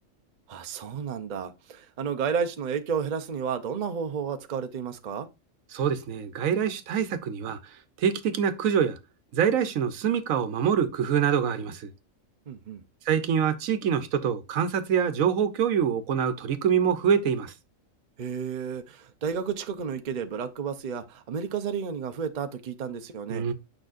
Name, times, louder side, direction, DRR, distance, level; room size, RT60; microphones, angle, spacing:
voice 1, 0.5-5.3 12.5-12.8 18.2-23.5, right 6 dB, 40° right, 0.7 m, -32 dB
voice 2, 5.7-9.0 9.3-11.9 13.1-17.5 23.3-23.5, right 8 dB, 80° right, 1.2 m, -25 dB
8.9 x 5.4 x 2.4 m
omnidirectional pair, 1.4 m